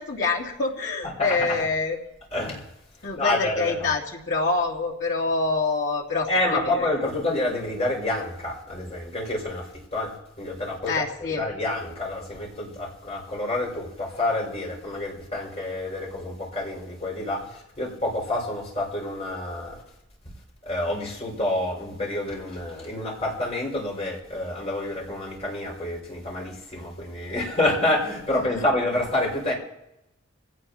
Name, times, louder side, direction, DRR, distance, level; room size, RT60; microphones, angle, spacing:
voice 1, 0.0-2.0 3.0-6.9 10.9-11.4 28.4-28.7, left 3 dB, 60° left, -3 dB, 3.1 m, -26 dB
voice 2, 2.3-2.6 3.1-3.7 6.3-9.6 9.9-10.9 11.3-19.8 20.7-29.5, left 1 dB, 30° left, -3 dB, 5.9 m, -28 dB
26.5 x 17.5 x 3.0 m, 0.86 s
head